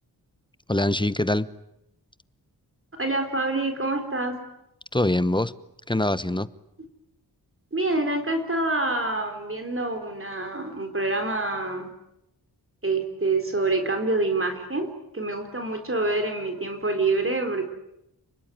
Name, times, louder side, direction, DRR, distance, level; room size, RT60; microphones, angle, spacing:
voice 1, 0.7-1.5 4.9-5.5 5.9-6.5, left 1 dB, 10° left, 1.0 m, -23 dB
voice 2, 3.0-4.4 7.7-11.9 12.8-17.7, right 2 dB, 35° right, 4.1 m, -26 dB
29.5 x 21.0 x 9.4 m
wide cardioid pair, 80°, 39 cm